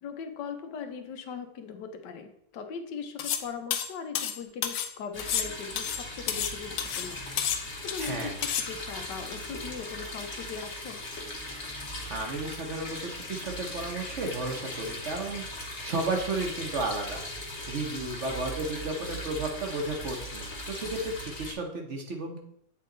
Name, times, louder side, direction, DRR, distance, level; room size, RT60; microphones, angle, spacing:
voice 1, 0.0-11.0, left 6 dB, 85° left, 7 dB, 1.4 m, -40 dB
sound 1, 3.2-3.5 3.7-4.9 5.2-6.5 6.8-7.1 7.4-8.1 8.4-8.7, left 9 dB, 65° left, 0.9 m, -30 dB
sound 2, 5.1-21.5, left 1 dB, 45° left, 1.6 m, -39 dB
voice 2, 8.0-8.4 12.1-17.2 17.7-22.4, right 2 dB, 50° right, 2 dB, 1.0 m, -33 dB
8.5 x 3.8 x 3.8 m, 0.72 s
omnidirectional pair, 1.8 m